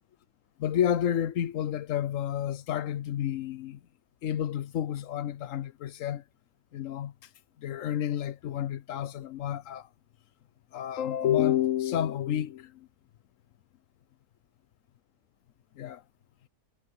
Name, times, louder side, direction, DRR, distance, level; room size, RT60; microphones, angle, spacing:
voice 1, 0.6-3.8 4.2-6.2 6.7-7.1 7.6-9.9 10.7-12.9 15.8-16.0, left 10 dB, 65° left, 0.9 m, -30 dB
omnidirectional pair, 1.7 m